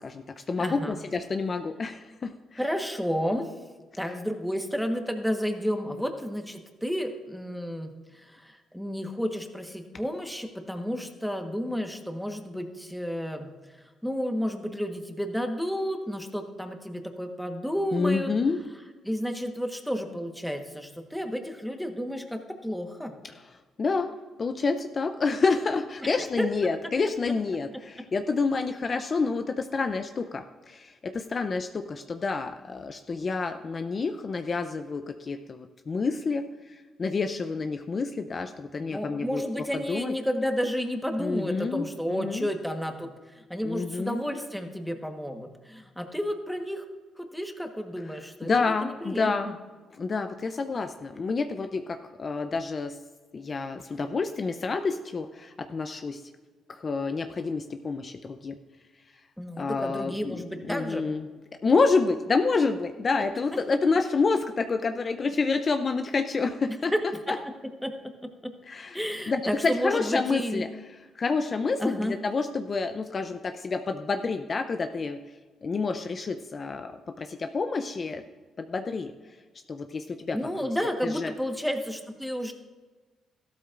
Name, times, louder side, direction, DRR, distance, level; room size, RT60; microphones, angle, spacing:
voice 1, 0.0-2.6 17.9-18.6 23.8-24.1 24.4-40.1 41.2-42.5 43.6-44.2 48.4-49.5 50.0-53.0 53.3-56.2 56.7-58.6 59.6-61.2 61.6-66.9 67.3-67.4 68.7-69.0 69.3-70.7 71.1-75.2 75.6-78.2 78.6-79.1 79.7-80.4 81.0-81.3, left 4 dB, 40° left, 7 dB, 0.5 m, -28 dB
voice 2, 0.6-1.0 2.6-3.5 4.0-18.3 19.0-23.1 26.0-26.5 38.8-46.8 47.2-49.5 59.4-61.0 63.5-63.6 66.9-67.0 67.3-67.4 67.8-67.9 68.2-68.5 68.9-70.6 71.8-72.1 80.3-82.5, equal, ahead, 4 dB, 1.2 m, -31 dB
14.0 x 12.5 x 2.5 m, 1.3 s
cardioid pair, 90°, 0 cm